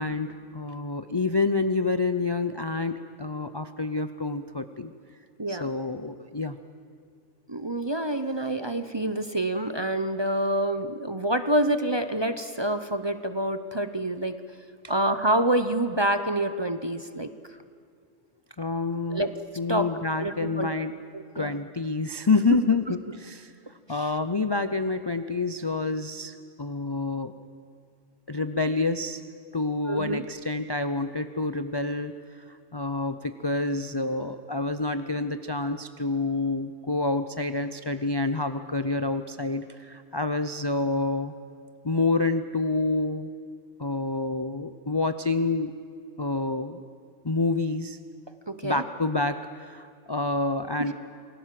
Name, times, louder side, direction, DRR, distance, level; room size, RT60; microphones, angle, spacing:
voice 1, 0.0-4.9 5.5-6.6 18.6-19.2 19.6-21.0 21.3-23.5 23.9-27.3 28.3-29.2 29.5-32.4 32.7-41.3 41.8-43.3 43.8-45.7 46.2-46.8 47.2-48.0 48.6-50.9, left 3 dB, 30° left, 9 dB, 0.5 m, -28 dB
voice 2, 5.4-5.7 7.5-14.4 14.9-17.3 19.1-19.3 19.7-19.9 20.2-20.7 21.1-21.6 29.9-30.2 48.5-48.8, right 1 dB, 25° right, 10 dB, 0.8 m, -27 dB
28.0 x 20.0 x 7.7 m, 2.3 s
omnidirectional pair, 1.3 m